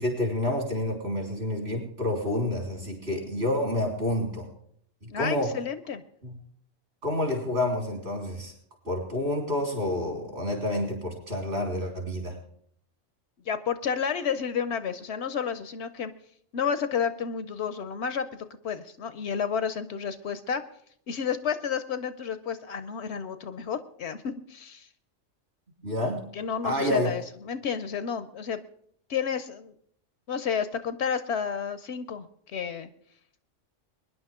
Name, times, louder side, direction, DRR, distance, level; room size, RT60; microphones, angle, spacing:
voice 1, 0.0-4.5 5.0-5.5 6.2-6.3 7.0-8.5 8.8-12.4 25.8-26.2 26.6-27.1, left 1 dB, 55° right, 0 dB, 4.0 m, -28 dB
voice 2, 5.1-6.0 13.5-16.1 16.5-20.6 21.1-24.9 26.3-28.6 29.1-29.7 30.3-32.9, left 7 dB, 65° left, 12 dB, 0.9 m, -31 dB
22.5 x 10.5 x 3.7 m, 0.67 s
omnidirectional pair, 1.3 m